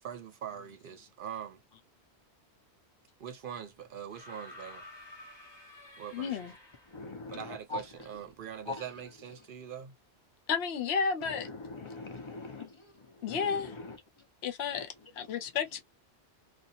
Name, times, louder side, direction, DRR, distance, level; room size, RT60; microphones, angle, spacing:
voice 1, 0.0-1.6 3.2-4.8 6.0-6.4 7.3-9.9, right 8 dB, 60° right, 0.7 m, -43 dB
sound 1, 4.1-7.2 8.4-8.5, left 1 dB, 25° left, 0.9 m, -51 dB
voice 2, 6.1-6.5 10.5-11.5 13.2-13.7 14.4-15.8, left 6 dB, 70° left, 0.9 m, -32 dB
voice 3, 6.9-7.8 8.7-8.8 11.3-14.0 14.7-14.9, left 3 dB, 45° left, 0.4 m, -42 dB
2.7 x 2.2 x 2.5 m
omnidirectional pair, 1.1 m